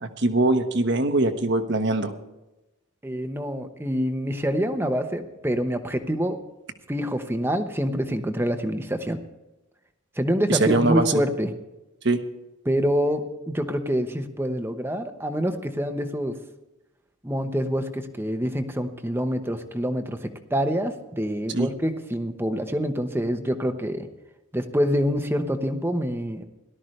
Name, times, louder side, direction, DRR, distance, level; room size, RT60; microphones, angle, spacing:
voice 1, 0.0-2.1 10.5-11.1 12.0-12.2 21.5-21.7, right 2 dB, 55° right, 7 dB, 1.3 m, -22 dB
voice 2, 3.0-6.4 6.9-9.2 10.2-11.5 12.6-16.4 17.2-24.1 24.5-26.4, equal, 10° right, 7 dB, 1.0 m, -26 dB
18.0 x 12.5 x 3.3 m, 0.99 s
head